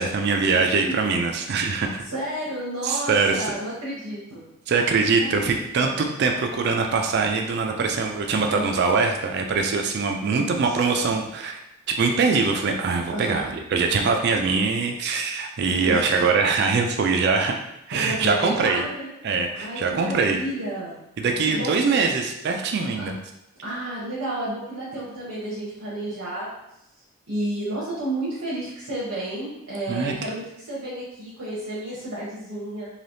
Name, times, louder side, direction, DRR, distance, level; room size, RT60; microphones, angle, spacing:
voice 1, 0.0-2.0 2.8-3.5 4.7-11.6 12.0-17.5 17.9-18.8 19.2-20.4 21.2-23.2 29.9-30.1, right 4 dB, 50° right, 3 dB, 0.3 m, -23 dB
voice 2, 2.1-4.5 5.2-6.2 8.3-8.8 10.2-10.7 13.1-13.4 15.9-16.3 17.9-19.1 19.5-21.0 21.4-21.8 23.0-23.1 23.6-26.5 27.3-32.9, right 1 dB, 85° right, -8 dB, 0.9 m, -31 dB
3.3 x 2.7 x 2.6 m, 0.85 s
head